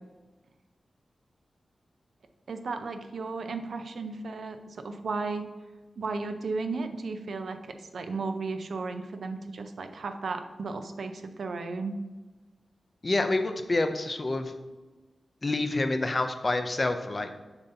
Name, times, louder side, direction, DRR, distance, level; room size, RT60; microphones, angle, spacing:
voice 1, 2.5-5.5 6.0-12.0, right 3 dB, 75° right, 7 dB, 0.5 m, -34 dB
voice 2, 13.0-14.5 15.4-17.3, left 2 dB, 30° left, 7 dB, 0.5 m, -27 dB
6.8 x 5.5 x 2.8 m, 1.2 s
wide cardioid pair, 125°, 0 cm